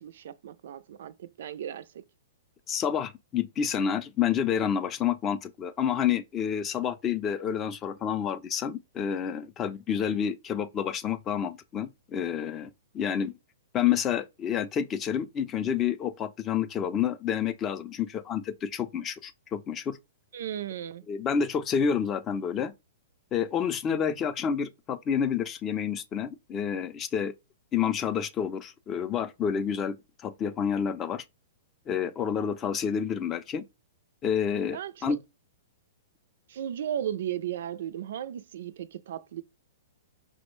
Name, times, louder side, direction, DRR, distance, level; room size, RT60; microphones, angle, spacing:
voice 1, 0.0-2.0 20.3-21.1 34.7-35.2 36.5-39.4, right 10 dB, 65° right, 0.3 m, -35 dB
voice 2, 2.7-13.3 13.7-20.0 21.1-22.7 23.3-27.3 27.7-30.0 30.2-31.2 31.9-33.6 34.2-35.2, left 8 dB, 25° left, 0.4 m, -29 dB
5.0 x 2.1 x 3.0 m
hypercardioid pair, 145°, 0 cm